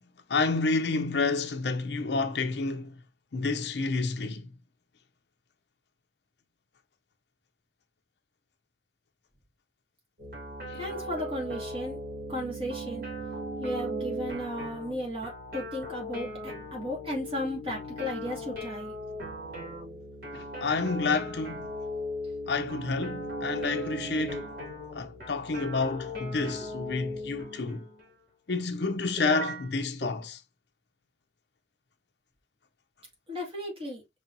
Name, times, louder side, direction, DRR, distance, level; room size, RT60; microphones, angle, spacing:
voice 1, 0.3-2.9 3.3-4.5 10.7-10.8 20.3-21.8 22.5-24.5 24.9-27.8 28.5-30.4, left 3 dB, 75° left, 0.6 m, -29 dB
sound 1, 10.2-28.0 29.2-29.7 30.0-30.1, equal, 50° right, 2.7 m, -38 dB
voice 2, 10.8-12.0 12.3-13.0 13.6-18.9 33.3-34.0, equal, 30° right, 2.2 m, -35 dB
5.3 x 3.4 x 2.6 m
head